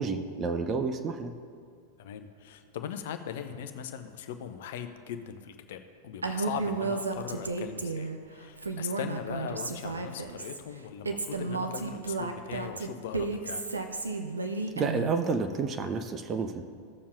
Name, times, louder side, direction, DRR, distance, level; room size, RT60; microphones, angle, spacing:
voice 1, 0.0-1.3 14.8-16.6, right 4 dB, 25° right, 7 dB, 0.5 m, -30 dB
voice 2, 2.0-13.6, left 8 dB, 55° left, 7 dB, 0.6 m, -39 dB
Female speech woman speaking, 6.2-8.2 8.6-10.6 11.0-15.2, right 3 dB, 75° right, 0.7 m, -33 dB
16.5 x 7.0 x 2.5 m, 2.2 s
figure-of-eight pair, 90°, 0 cm